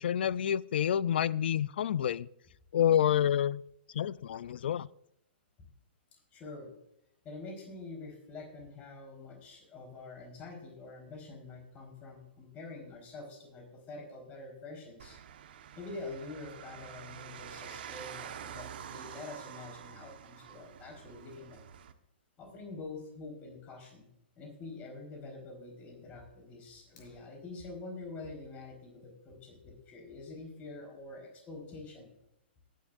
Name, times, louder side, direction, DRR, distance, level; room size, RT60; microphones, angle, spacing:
voice 1, 0.0-2.3 2.7-3.6 3.9-4.9, left 10 dB, 65° left, 20 dB, 0.4 m, -28 dB
voice 2, 6.1-6.7 7.2-15.2 15.8-21.7 22.4-24.1 24.4-32.1, left 3 dB, 25° left, 2 dB, 4.2 m, -46 dB
sound 1, 15.0-21.9, right 9 dB, 60° right, 1.2 m, -47 dB
Fire, 26.8-27.8, left 4 dB, 45° left, 4.9 m, -62 dB
18.5 x 10.5 x 2.6 m, 0.77 s
hypercardioid pair, 140°, 6 cm